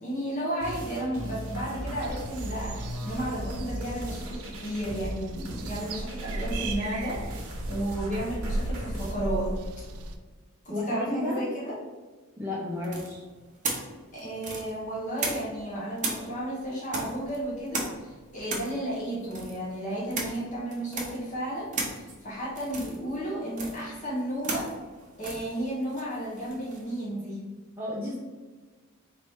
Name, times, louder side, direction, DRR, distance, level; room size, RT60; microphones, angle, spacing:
voice 1, 0.0-7.2 7.7-9.6 10.6-11.8 14.1-24.7 25.2-27.4, right 1 dB, 35° left, -5 dB, 0.9 m, -33 dB
sound 1, 0.6-9.1, equal, 65° right, 0.9 m, -38 dB
sound 2, 2.0-10.2, right 2 dB, 85° right, 0.4 m, -37 dB
voice 2, 10.7-11.5 12.4-13.2 27.8-28.2, left 1 dB, 10° right, -6 dB, 0.5 m, -32 dB
sound 3, 12.8-15.7 16.0-26.9, right 3 dB, 35° right, 0.8 m, -36 dB
4.2 x 2.8 x 3.5 m, 1.3 s
head